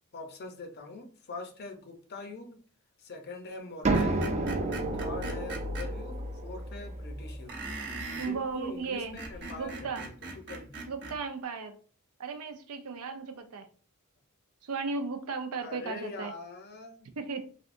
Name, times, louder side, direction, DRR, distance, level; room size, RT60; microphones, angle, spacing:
voice 1, 0.1-2.6 3.0-4.4 4.9-7.5 8.1-10.7 15.6-17.1, left 3 dB, 45° left, 0.6 m, -43 dB
sound 1, 3.8-9.4, right 2 dB, 30° right, 0.5 m, -32 dB
Screech, 3.9-5.9 7.5-8.4 9.0-11.2, right 3 dB, 50° right, 0.9 m, -40 dB
voice 2, 8.2-9.2 9.5-10.1 10.9-11.8 12.2-13.7 14.6-16.3 17.2-17.5, right 4 dB, 80° right, 0.5 m, -35 dB
3.4 x 2.7 x 2.5 m
head